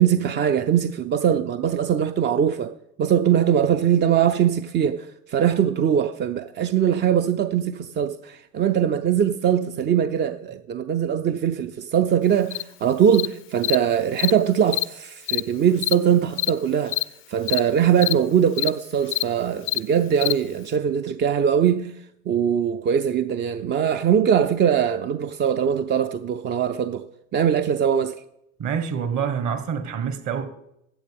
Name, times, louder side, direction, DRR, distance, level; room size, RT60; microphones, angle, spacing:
voice 1, 0.0-2.7 3.0-17.0 17.3-21.9 22.3-27.1 27.3-28.2, right 8 dB, 25° right, 0.5 m, -21 dB
Cricket, 12.5-12.6 13.1-13.3 13.6-13.8 14.2-14.3 14.7-14.8 15.3-15.4 15.8-15.9 16.4-16.5 16.9-17.0 17.5-17.6 18.0-18.1 18.6-18.7 19.1-19.2 19.7-19.8 20.2-20.3, left 17 dB, 30° left, 0.4 m, -24 dB
voice 2, 28.6-30.5, right 7 dB, 45° right, 1.5 m, -26 dB
14.0 x 7.9 x 3.5 m
hypercardioid pair, 75°, 41 cm